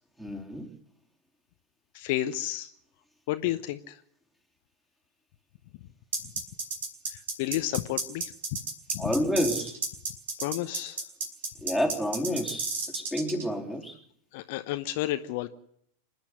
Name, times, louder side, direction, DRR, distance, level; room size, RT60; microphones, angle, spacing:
voice 1, 0.2-0.7 9.0-9.8 11.6-14.0, equal, 5° right, 1 dB, 3.7 m, -29 dB
voice 2, 1.9-2.7 3.3-4.0 7.1-8.3 8.9-9.1 10.4-11.0 14.3-15.5, left 14 dB, 50° left, 9 dB, 0.9 m, -31 dB
sound 1, 6.1-13.4, right 4 dB, 60° right, 5.3 m, -32 dB
26.0 x 10.0 x 9.9 m, 0.68 s
figure-of-eight pair, 90°, 0 cm